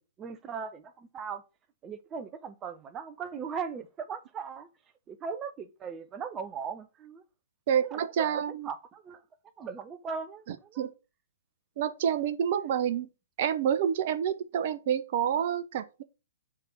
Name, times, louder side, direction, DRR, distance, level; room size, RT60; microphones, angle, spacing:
voice 1, 0.2-1.4 1.8-4.7 5.1-7.2 7.8-8.0 8.6-9.2 9.6-10.9, right 6 dB, 20° right, 0.9 m, -38 dB
voice 2, 7.7-8.7 10.5-10.9 11.8-13.1 13.4-16.0, right 9 dB, 45° right, 0.9 m, -28 dB
6.5 x 3.6 x 5.9 m
figure-of-eight pair, 120°, 0 cm